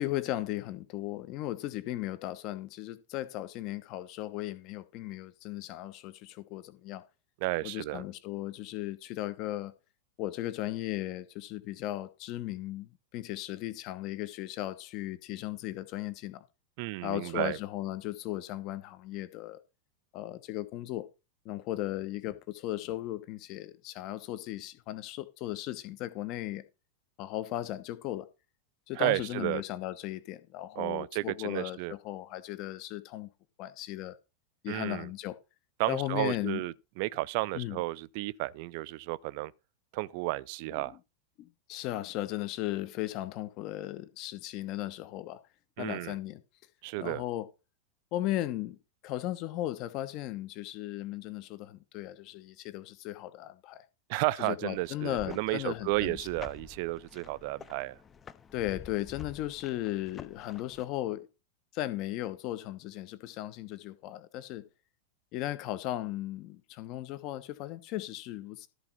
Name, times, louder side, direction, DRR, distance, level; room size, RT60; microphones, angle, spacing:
voice 1, 0.0-7.0 7.6-9.7 10.2-16.4 17.0-19.6 20.1-21.1 21.4-26.6 27.2-28.3 28.9-33.3 33.6-34.2 34.6-35.4 35.9-36.6 37.5-37.8 41.4-45.4 45.8-46.4 47.0-47.4 48.1-48.8 49.0-53.8 54.4-56.2 58.5-61.3 61.7-64.6 65.3-68.7, left 14 dB, 40° left, 1.1 m, -36 dB
voice 2, 7.4-8.0 16.8-17.6 28.9-29.6 30.8-31.9 34.7-35.1 35.8-39.5 39.9-41.0 45.8-46.2 46.8-47.2 54.1-58.0, right 20 dB, 45° right, 0.5 m, -32 dB
sound 1, 54.7-60.9, left 6 dB, 20° left, 0.7 m, -49 dB
13.0 x 4.7 x 5.6 m
figure-of-eight pair, 90°, 0 cm